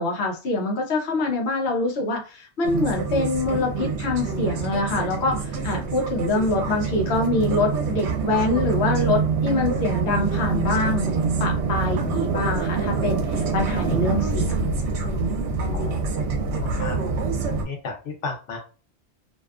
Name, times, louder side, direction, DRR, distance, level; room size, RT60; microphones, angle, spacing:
voice 1, 0.0-14.7, left 2 dB, 65° left, 0 dB, 1.0 m, -25 dB
sound 1, 2.6-17.6, right 4 dB, 75° right, 0.9 m, -25 dB
voice 2, 16.5-17.0 17.7-18.6, left 4 dB, 85° left, 2 dB, 1.1 m, -33 dB
2.6 x 2.2 x 2.3 m, 0.35 s
omnidirectional pair, 1.2 m